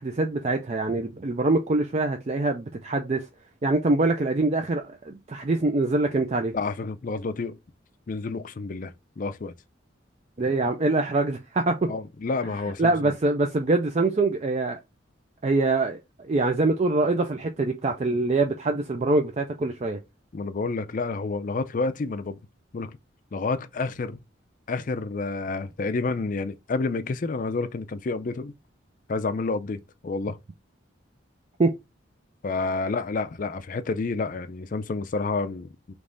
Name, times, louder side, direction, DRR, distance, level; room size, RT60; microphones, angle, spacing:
voice 1, 0.0-3.2 3.6-6.5 10.4-11.9 12.8-14.8 15.4-20.0 31.6-31.7, right 2 dB, 35° right, 0.4 m, -24 dB
voice 2, 6.5-7.6 8.1-9.5 11.9-13.1 20.3-22.4 22.7-23.0 23.3-24.2 24.7-28.5 29.1-30.4 32.4-35.9, left 3 dB, 40° left, 0.4 m, -29 dB
3.4 x 3.1 x 3.8 m
head